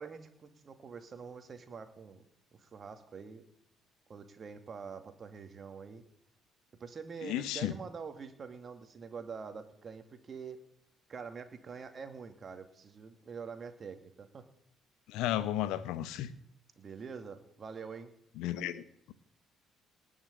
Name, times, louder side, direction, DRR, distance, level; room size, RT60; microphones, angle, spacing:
voice 1, 0.0-2.2 2.5-3.4 4.1-6.0 6.8-10.6 11.1-14.5 16.8-18.1, right 5 dB, 40° right, 7 dB, 2.5 m, -45 dB
voice 2, 7.2-7.7 15.1-16.3 18.4-19.1, left 12 dB, 70° left, 14 dB, 1.0 m, -34 dB
19.0 x 6.6 x 8.3 m, 0.70 s
hypercardioid pair, 50°, 0 cm